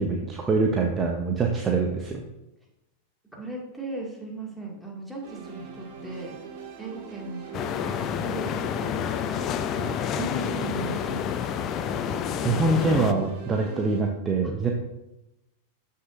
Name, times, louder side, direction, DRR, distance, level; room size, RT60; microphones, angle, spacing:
voice 1, 0.0-2.2 12.4-14.7, right 3 dB, 20° right, 2 dB, 0.9 m, -24 dB
voice 2, 3.3-6.4 6.8-11.5 14.4-14.5, right 1 dB, ahead, -2 dB, 2.1 m, -37 dB
sound 1, 5.2-14.0, right 6 dB, 45° right, 1.9 m, -42 dB
sound 2, 7.5-13.1, left 9 dB, 35° left, 0.5 m, -29 dB
13.0 x 5.7 x 2.5 m, 0.93 s
figure-of-eight pair, 90°, 0 cm